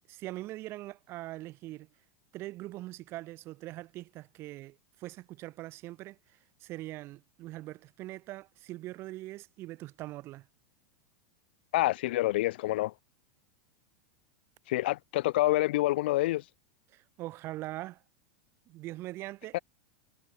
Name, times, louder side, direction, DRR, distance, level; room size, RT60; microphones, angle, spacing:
voice 1, 0.1-1.9 2.3-6.2 6.6-10.5 16.9-18.0 18.7-19.6, right 17 dB, 45° right, 3.3 m, -42 dB
voice 2, 11.7-12.9 14.7-16.4 19.5-19.6, left 17 dB, 65° left, 1.2 m, -27 dB
hypercardioid pair, 100°, 6 cm